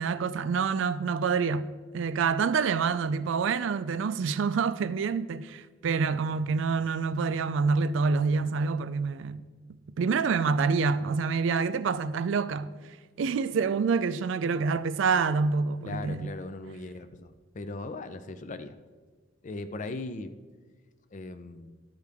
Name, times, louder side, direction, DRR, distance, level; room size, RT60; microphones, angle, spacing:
voice 1, 0.0-1.7 1.9-9.4 10.0-12.7 13.2-16.3, right 5 dB, 70° right, 0.4 m, -27 dB
voice 2, 15.8-18.8 19.4-20.3 21.1-21.7, left 2 dB, 40° left, 0.4 m, -38 dB
11.5 x 6.6 x 3.5 m
head